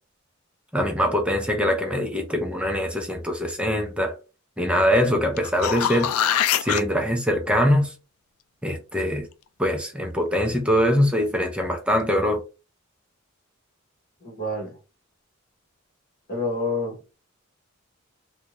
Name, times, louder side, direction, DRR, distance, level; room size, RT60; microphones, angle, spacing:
voice 1, 0.7-4.1 4.6-6.1 6.6-7.9 8.6-9.3 9.6-12.4, equal, 5° right, 0.5 m, -23 dB
sound 1, 5.4-6.8 11.6-11.7, left 10 dB, 90° left, 0.3 m, -23 dB
voice 2, 14.2-14.7 16.3-17.0, left 2 dB, 45° left, 1.0 m, -28 dB
2.5 x 2.2 x 2.9 m
head